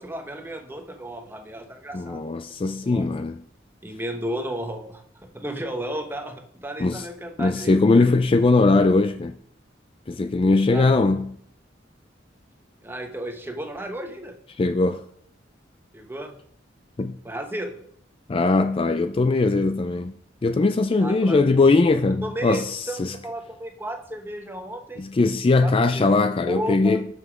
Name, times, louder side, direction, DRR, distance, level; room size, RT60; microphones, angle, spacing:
voice 1, 0.0-2.4 2.8-3.1 3.8-5.0 5.3-8.1 10.7-10.9 12.8-14.3 15.9-16.3 17.2-17.8 21.0-21.4 22.2-22.6 22.9-25.0 25.6-26.1 26.5-27.0, right 1 dB, 10° right, 1.0 m, -33 dB
voice 2, 1.9-3.4 6.8-7.0 7.4-9.3 10.1-11.4 14.6-15.0 17.0-17.2 18.3-20.1 20.4-23.2 25.0-27.1, left 3 dB, 30° left, 0.3 m, -20 dB
6.9 x 6.6 x 6.1 m
head